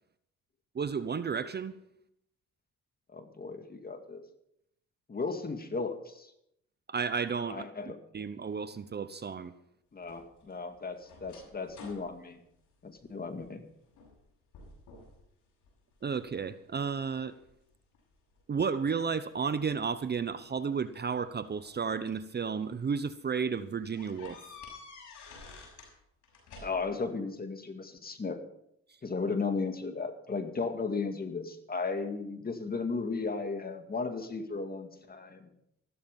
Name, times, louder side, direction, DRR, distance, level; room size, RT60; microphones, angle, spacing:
voice 1, 0.7-1.8 6.9-7.6 8.1-9.5 16.0-17.3 18.5-24.4, right 6 dB, 35° right, 13 dB, 0.8 m, -32 dB
voice 2, 3.1-4.2 5.1-6.3 7.5-8.0 9.9-12.4 12.8-13.6 26.6-28.4 29.0-35.5, left 4 dB, 30° left, 7 dB, 2.1 m, -35 dB
sound 1, 10.0-13.5 13.9-14.2 14.5-15.2 15.6-16.4 17.0-18.4 19.6-19.7 20.9-22.3 22.8-23.0 23.3-23.4 23.9-26.0 26.2-27.1, left 4 dB, 80° left, 6.2 m, -51 dB
14.5 x 12.5 x 5.4 m, 0.77 s
cardioid pair, 90°, 30 cm